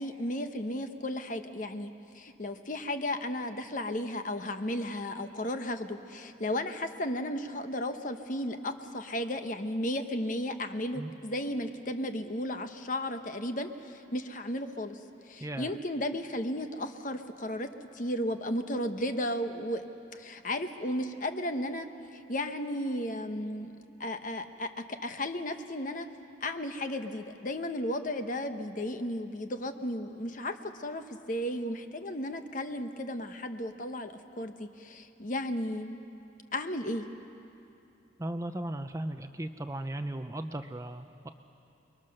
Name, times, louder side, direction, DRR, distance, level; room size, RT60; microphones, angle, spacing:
voice 1, 0.0-15.0 15.2-17.7 17.9-23.7 24.0-26.1 26.4-36.0 36.5-37.1, left 1 dB, 40° left, 7 dB, 1.0 m, -34 dB
voice 2, 15.4-15.7 38.2-41.3, right 1 dB, 15° right, 8 dB, 0.6 m, -36 dB
29.5 x 22.0 x 6.6 m, 2.7 s
head